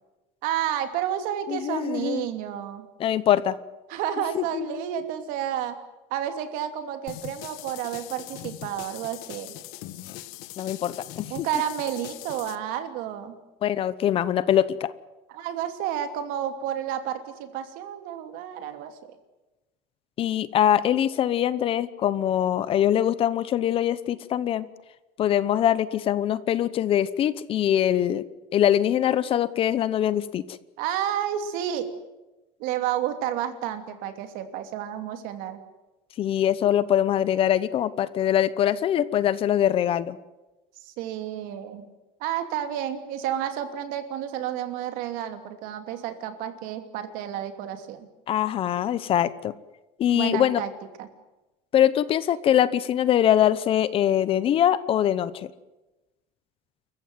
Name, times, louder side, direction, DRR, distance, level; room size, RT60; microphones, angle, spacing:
voice 1, 0.4-2.9 3.9-5.8 6.1-9.6 11.3-13.4 15.3-19.0 30.8-31.9 32.6-35.6 40.8-41.9 42.2-48.1 50.1-50.7 51.0-51.1, right 10 dB, 70° right, 8 dB, 2.8 m, -31 dB
voice 2, 1.5-2.3 3.0-3.6 4.3-4.8 10.6-11.5 13.6-14.9 20.2-24.7 25.2-28.2 28.5-30.4 36.2-40.2 48.3-49.5 50.0-50.6 51.7-55.5, left 10 dB, 40° left, 17 dB, 0.9 m, -23 dB
sound 1, 7.1-12.6, left 15 dB, 75° left, 1.3 m, -41 dB
28.5 x 15.0 x 9.4 m, 1.1 s
cardioid pair, 155°, 15 cm